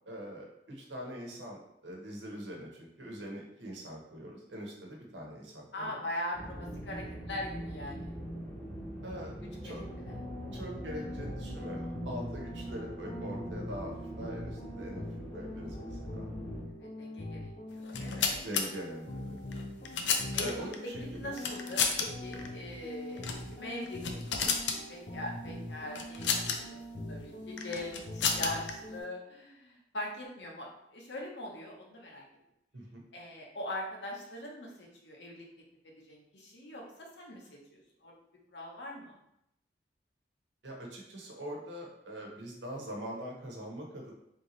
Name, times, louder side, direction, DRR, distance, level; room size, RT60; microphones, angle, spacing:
voice 1, 0.0-6.0 9.0-9.3 9.6-9.8 10.5-15.0 15.3-16.3 18.4-19.4 20.3-21.5 32.7-33.0 40.6-44.1, equal, 85° right, -1 dB, 1.1 m, -43 dB
voice 2, 5.7-8.2 9.6-9.8 16.8-18.5 20.3-20.7 21.2-32.2 33.1-35.4 35.8-38.1 38.5-39.1, left 1 dB, 70° left, -1 dB, 1.0 m, -42 dB
sound 1, 6.3-16.6, equal, 10° left, 0.9 m, -42 dB
sound 2, 9.8-29.0, left 1 dB, 45° left, 0.7 m, -43 dB
sound 3, 17.8-18.6 19.5-20.8 21.4-22.1 22.3-22.5 23.2-23.5 23.8-24.8 26.0-26.6 27.6-28.7, left 6 dB, 85° left, 0.5 m, -31 dB
3.5 x 3.0 x 3.9 m, 0.80 s
head